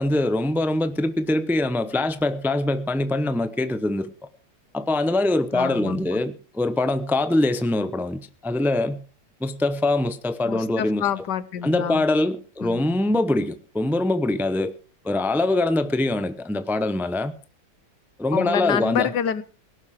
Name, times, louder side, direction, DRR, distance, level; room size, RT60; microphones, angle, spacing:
voice 1, 0.0-4.1 4.7-9.0 9.4-11.1 11.6-14.7 15.0-17.3 18.2-19.1, left 2 dB, ahead, 0.6 m, -23 dB
voice 2, 5.5-6.2 10.4-12.1 12.6-13.0 18.3-19.4, left 9 dB, 85° left, 1.6 m, -27 dB
17.5 x 11.5 x 4.9 m
omnidirectional pair, 1.8 m